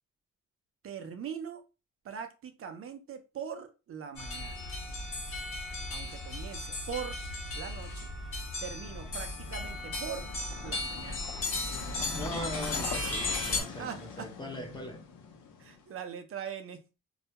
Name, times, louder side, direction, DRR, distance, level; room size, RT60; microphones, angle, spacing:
voice 1, 0.8-1.6 2.0-4.7 5.9-7.2 7.5-8.1 8.6-10.3 10.6-11.2 12.0-12.2 13.2-14.3 15.6-16.8, right 7 dB, 45° right, 0.5 m, -41 dB
sound 1, 4.2-13.6, left 2 dB, 45° left, 1.0 m, -36 dB
sound 2, 8.8-15.8, left 5 dB, 85° left, 0.7 m, -43 dB
voice 2, 12.1-15.0, equal, 15° left, 0.6 m, -40 dB
2.2 x 2.1 x 2.8 m
cardioid pair, 90°, 30 cm